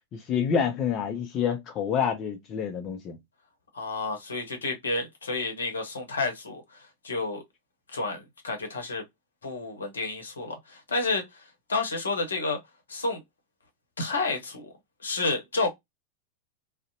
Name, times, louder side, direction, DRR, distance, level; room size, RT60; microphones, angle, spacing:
voice 1, 0.1-3.2, left 7 dB, 30° left, 0.5 m, -28 dB
voice 2, 3.7-7.4 7.9-9.0 9.4-11.4 11.7-12.6 12.9-13.2 14.0-14.7 15.0-15.7, left 3 dB, 70° left, 0.8 m, -30 dB
2.6 x 2.0 x 2.5 m
figure-of-eight pair, 90°, 0 cm